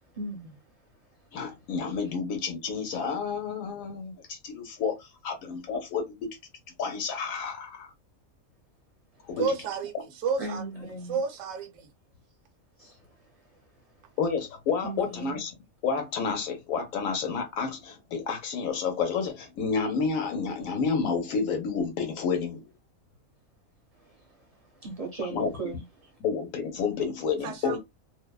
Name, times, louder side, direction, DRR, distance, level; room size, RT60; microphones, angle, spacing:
voice 1, 0.1-0.6 10.4-11.2 12.8-13.0 14.8-15.4 24.0-24.3 24.8-26.1, right 3 dB, 35° right, 0.6 m, -37 dB
voice 2, 1.3-6.3 6.8-7.9 9.3-9.5 14.2-15.5 15.8-22.7 25.3-25.5 26.2-27.8, left 5 dB, 70° left, 1.1 m, -30 dB
voice 3, 9.4-9.9 10.2-10.6 11.1-11.9 27.4-27.8, right 5 dB, 70° right, 0.9 m, -30 dB
2.6 x 2.1 x 2.2 m
omnidirectional pair, 1.5 m